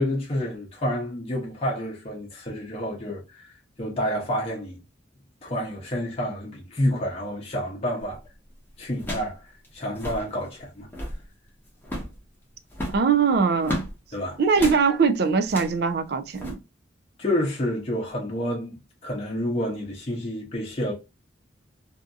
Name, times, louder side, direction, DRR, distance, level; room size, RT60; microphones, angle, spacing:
voice 1, 0.0-3.5 3.8-4.8 5.4-8.2 8.8-10.9 14.1-14.4 17.2-20.9, equal, 35° left, 0.7 m, -29 dB
sound 1, 8.0-8.3 9.0-9.4 9.6-9.7 9.9-10.3 10.8-11.2 11.8-12.2 12.7-13.9 14.5-14.8 15.4-15.8 16.3-16.5, equal, 10° left, 0.9 m, -33 dB
voice 2, 12.9-13.8 14.4-16.6, right 5 dB, 60° right, 0.4 m, -21 dB
2.7 x 2.6 x 2.3 m
head